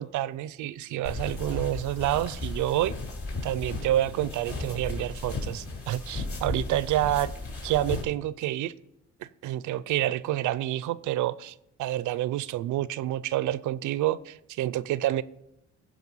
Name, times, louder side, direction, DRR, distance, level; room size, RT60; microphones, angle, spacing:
voice 1, 0.0-3.0 3.4-7.3 7.6-8.7 9.2-15.2, right 13 dB, 80° right, 0.5 m, -28 dB
sound 1, 1.0-8.0, left 3 dB, 45° left, 3.4 m, -35 dB
14.5 x 5.2 x 5.5 m
cardioid pair, 90°, 30 cm